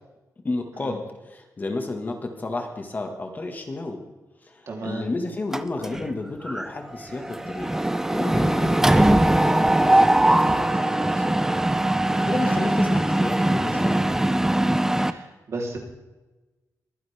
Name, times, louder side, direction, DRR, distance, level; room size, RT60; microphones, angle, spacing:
voice 1, 0.4-4.0 4.4-7.7 8.1-11.4 12.3-14.3, left 2 dB, 30° left, 4 dB, 1.6 m, -32 dB
voice 2, 4.7-5.0 8.6-8.8 12.1-12.4 15.0-15.8, right 2 dB, 50° right, 0 dB, 3.3 m, -35 dB
Mechanisms, 5.5-6.1 6.5-6.7 6.9-15.1, right 1 dB, 5° right, 0.5 m, -21 dB
23.0 x 10.5 x 3.5 m, 1.1 s
wide cardioid pair, 170°, 6 cm